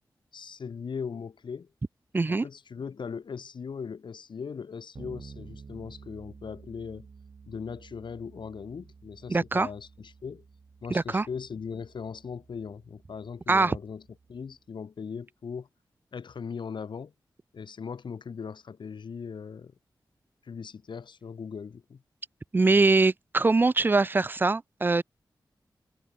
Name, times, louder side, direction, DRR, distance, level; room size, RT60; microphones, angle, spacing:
voice 1, 0.3-1.7 2.3-7.1 7.5-10.4 10.8-14.0 14.3-15.7 16.1-17.1 17.5-19.7 20.4-22.0, left 6 dB, 75° left, 2.7 m, -39 dB
voice 2, 2.1-2.5 9.3-9.7 10.9-11.3 13.5-13.8 22.5-25.0, right 3 dB, 25° right, 0.3 m, -23 dB
Bass guitar, 4.9-14.6, right 5 dB, 70° right, 5.3 m, -51 dB
cardioid pair, 55°, 8 cm